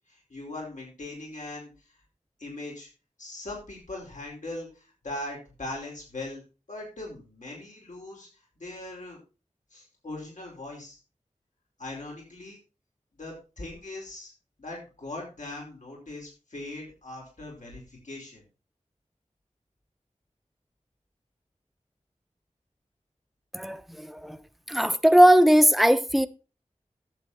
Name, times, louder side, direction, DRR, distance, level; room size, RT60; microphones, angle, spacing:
voice 1, 0.1-1.9 2.4-2.9 3.2-6.4 6.7-8.3 8.6-9.2 9.7-11.0 11.8-12.6 13.2-14.3 14.6-18.4, left 2 dB, 80° left, 4.9 m, -40 dB
voice 2, 23.5-24.4 24.7-26.3, equal, ahead, 0.9 m, -19 dB
11.5 x 8.3 x 4.3 m
wide cardioid pair, 65°, 13 cm